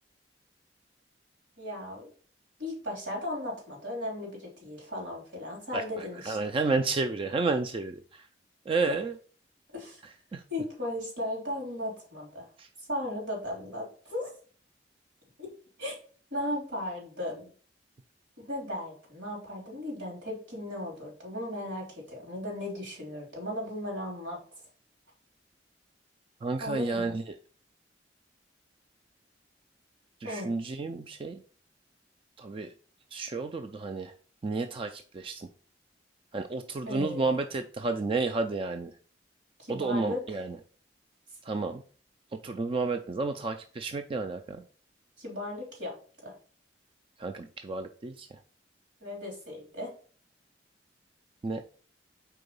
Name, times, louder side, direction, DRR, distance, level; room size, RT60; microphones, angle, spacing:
voice 1, 1.6-2.1 2.6-6.4 9.7-10.0 10.5-12.4 12.9-14.3 15.4-15.5 15.8-16.0 16.3-17.5 18.4-24.4 26.6-27.2 30.2-30.5 36.9-37.3 39.6-40.2 41.3-41.4 45.2-45.9 46.2-46.3 49.0-49.9, left 1 dB, 80° right, -1 dB, 3.3 m, -36 dB
voice 2, 5.7-8.3 8.7-9.1 10.3-10.4 12.6-12.7 26.4-27.4 30.2-31.4 32.4-32.7 33.1-34.1 34.4-35.5 36.3-38.9 39.7-40.6 41.4-41.8 42.4-44.6 47.2-48.4 51.4-51.6, right 3 dB, 30° right, 7 dB, 0.3 m, -31 dB
4.6 x 3.9 x 5.2 m, 0.42 s
head